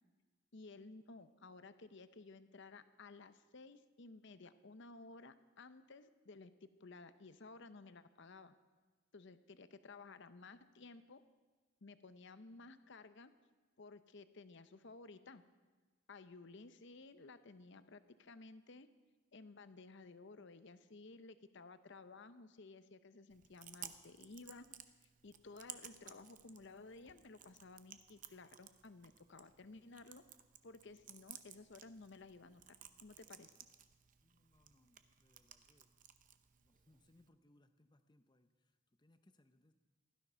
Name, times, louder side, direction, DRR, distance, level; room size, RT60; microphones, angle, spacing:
voice 1, 0.5-6.5 6.8-8.6 9.1-11.2 11.8-13.3 13.8-15.4 16.1-18.9 19.3-24.7 25.2-30.2 30.6-33.5, left 3 dB, 55° left, 12 dB, 0.7 m, -56 dB
Chewing mastication, 23.3-37.3, right 10 dB, 35° right, 0.7 m, -58 dB
voice 2, 34.2-35.9 36.6-39.7, left 1 dB, 20° left, 9 dB, 0.6 m, -71 dB
16.0 x 12.5 x 5.7 m, 1.3 s
head